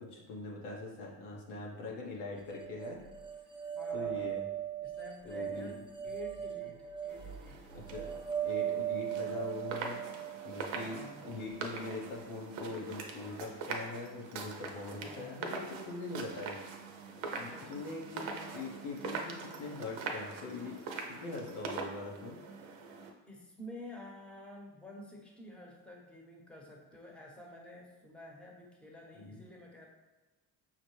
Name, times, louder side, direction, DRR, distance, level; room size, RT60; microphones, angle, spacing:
voice 1, 0.0-3.0 3.9-4.4 5.2-5.7 7.7-8.1 8.4-16.6 17.3-22.4 29.1-29.4, left 2 dB, 90° left, -2 dB, 1.0 m, -42 dB
sound 1, 2.5-11.6, right 10 dB, 15° right, 0.3 m, -39 dB
voice 2, 3.7-4.4 4.8-7.6 8.0-8.3 10.9-11.3 15.0-15.5 17.5-17.8 23.3-29.9, left 1 dB, ahead, -1 dB, 0.9 m, -50 dB
sound 2, 7.1-23.1, right 4 dB, 80° right, 0.7 m, -43 dB
5.6 x 2.1 x 3.1 m, 1.2 s
supercardioid pair, 75°, 45 cm